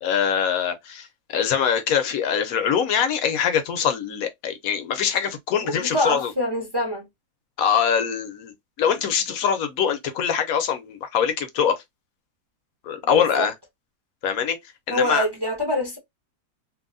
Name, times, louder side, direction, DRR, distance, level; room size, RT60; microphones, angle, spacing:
voice 1, 0.0-6.3 7.6-11.8 12.8-13.5 14.2-14.6 14.9-15.3, left 7 dB, 70° left, 1.0 m, -23 dB
voice 2, 5.6-7.1 13.1-13.5 14.9-16.0, left 1 dB, 25° right, 0.5 m, -25 dB
2.9 x 2.7 x 2.5 m
omnidirectional pair, 1.7 m